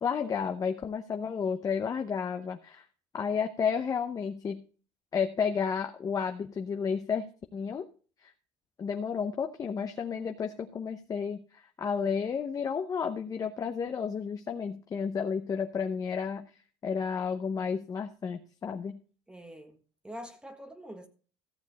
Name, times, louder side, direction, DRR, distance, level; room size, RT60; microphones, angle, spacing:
voice 1, 0.0-2.9 3.1-4.6 5.1-7.9 8.2-8.3 8.8-16.5 16.8-19.0, left 6 dB, 30° left, 0.8 m, -32 dB
voice 2, 19.3-21.1, equal, 5° right, 1.4 m, -45 dB
14.5 x 7.3 x 4.2 m
cardioid pair, 130°, 12 cm